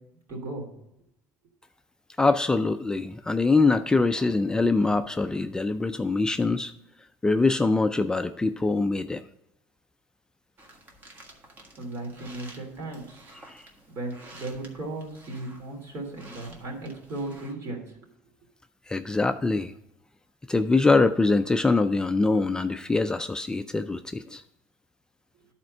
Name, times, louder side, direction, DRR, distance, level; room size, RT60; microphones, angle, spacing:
voice 1, 0.3-0.7 11.8-13.2 13.9-17.8, right 2 dB, 55° right, 1 dB, 2.9 m, -36 dB
voice 2, 2.2-6.7 7.2-9.2 13.5-13.6 18.9-19.7 20.5-24.4, left 3 dB, 10° left, 9 dB, 0.3 m, -23 dB
sound 1, 10.6-17.5, right 1 dB, 35° right, 1.6 m, -51 dB
10.5 x 4.3 x 5.4 m, 0.82 s
cardioid pair, 115°, 6 cm